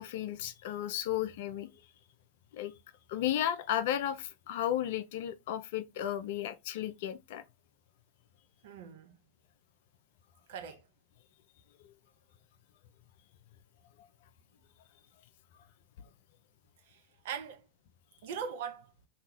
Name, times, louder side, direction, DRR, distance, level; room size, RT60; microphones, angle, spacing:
voice 1, 0.0-1.7 2.5-2.7 3.1-7.4, left 11 dB, 50° left, 0.3 m, -34 dB
voice 2, 8.6-9.1 10.5-10.8 16.9-17.6 18.2-18.9, right 7 dB, 55° right, 0.6 m, -41 dB
2.7 x 2.2 x 3.0 m
figure-of-eight pair, 90°, 0 cm